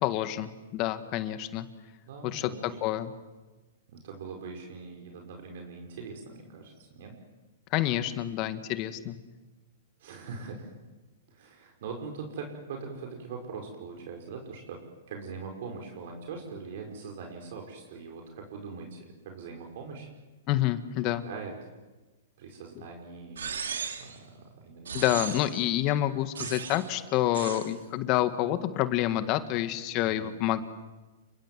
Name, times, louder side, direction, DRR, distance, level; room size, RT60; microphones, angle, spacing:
voice 1, 0.0-1.7 2.2-3.1 7.7-9.2 20.5-21.2 24.9-30.6, left 13 dB, 40° left, 10 dB, 1.8 m, -28 dB
voice 2, 2.1-2.9 3.9-7.2 10.0-10.8 11.3-14.8 15.1-20.1 21.0-21.5 22.4-23.5 24.0-25.3 30.0-30.3, right 4 dB, 60° right, 2 dB, 5.6 m, -42 dB
sound 1, 23.4-24.2 24.8-25.6 26.3-26.9 27.3-27.7, right 6 dB, 85° right, 3.1 m, -36 dB
29.5 x 22.5 x 7.7 m, 1.2 s
hypercardioid pair, 125°, 0 cm